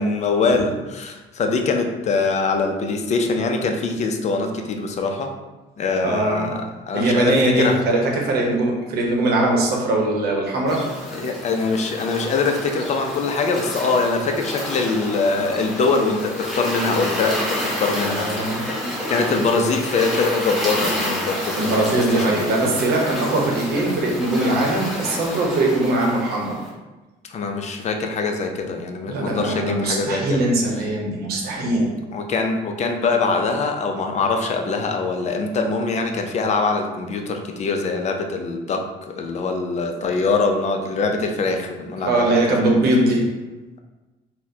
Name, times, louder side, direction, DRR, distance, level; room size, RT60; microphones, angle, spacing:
voice 1, 0.0-5.3 5.8-7.8 10.7-10.8 11.2-18.3 18.6-22.6 27.3-30.4 31.7-42.7, left 4 dB, 40° left, 4 dB, 0.4 m, -23 dB
voice 2, 6.0-6.5 6.9-10.8 17.9-18.7 21.6-26.6 29.1-31.9 42.0-43.2, right 2 dB, 70° right, 0 dB, 0.8 m, -21 dB
sound 1, 10.7-26.7, left 1 dB, ahead, 1.3 m, -29 dB
4.1 x 2.1 x 2.7 m, 1.2 s
cardioid pair, 110°, 17 cm